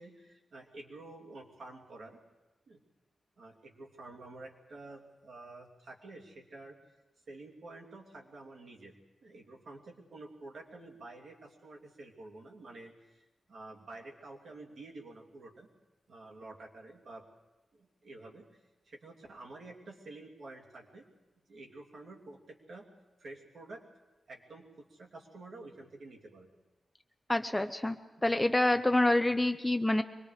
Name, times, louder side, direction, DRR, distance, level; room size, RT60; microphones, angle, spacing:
voice 1, 0.0-2.2 2.7-2.8 3.4-6.8 7.3-8.9 9.2-13.2 13.5-15.7 16.1-17.2 17.7-18.4 18.8-21.1 21.5-22.9 23.2-23.8 24.3-26.5 27.5-27.6, right 2 dB, 60° right, -1 dB, 3.0 m, -49 dB
voice 2, 27.3-28.0 28.2-30.0, left 1 dB, 10° left, 8 dB, 0.6 m, -27 dB
24.5 x 21.0 x 5.0 m, 1.1 s
wide cardioid pair, 145°, 0 cm